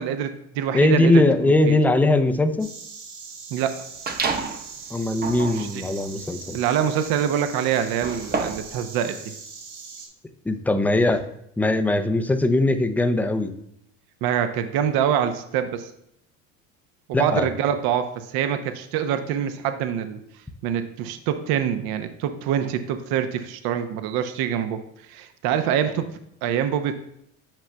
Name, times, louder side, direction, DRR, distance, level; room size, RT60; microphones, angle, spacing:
voice 1, 0.0-1.8 3.5-3.8 5.5-5.8 6.5-9.2 14.2-15.9 17.1-20.2 20.6-24.8 25.1-26.9, right 9 dB, 60° right, 9 dB, 0.8 m, -25 dB
voice 2, 0.7-2.7 4.9-6.6 10.5-11.2 11.6-13.5 17.1-17.5, left 2 dB, 5° left, 8 dB, 0.4 m, -20 dB
Insect, 2.6-10.1, right 5 dB, 90° right, 1.8 m, -41 dB
sound 1, 4.1-4.7 5.1-8.8, right 4 dB, 20° right, 0.9 m, -30 dB
8.9 x 5.6 x 2.2 m, 0.75 s
hypercardioid pair, 85°, 43 cm